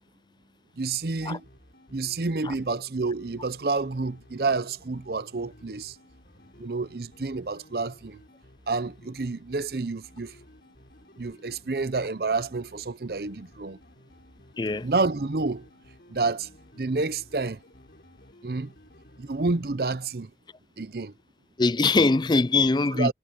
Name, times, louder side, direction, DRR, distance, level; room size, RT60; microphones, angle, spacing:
voice 1, 0.8-1.5 1.9-6.0 6.6-8.2 8.7-10.3 11.2-13.8 14.8-15.7 16.1-16.5 16.8-17.6 18.4-18.7 19.2-20.3 20.8-21.1 22.9-23.1, right 3 dB, 55° right, 0.7 m, -29 dB
sound 1, 1.0-19.6, left 1 dB, 60° left, 6.8 m, -55 dB
voice 2, 14.6-14.9 21.6-23.1, left 3 dB, 25° left, 0.4 m, -22 dB
head